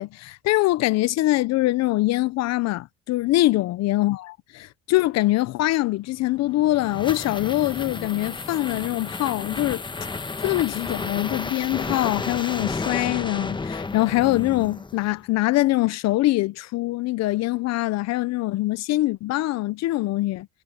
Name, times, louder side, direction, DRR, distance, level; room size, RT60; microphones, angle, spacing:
voice 1, 0.0-9.8 10.4-20.5, left 17 dB, 60° left, 1.0 m, -23 dB
sound 1, 6.4-15.2, left 3 dB, 15° left, 1.3 m, -32 dB
supercardioid pair, 95°, 29 cm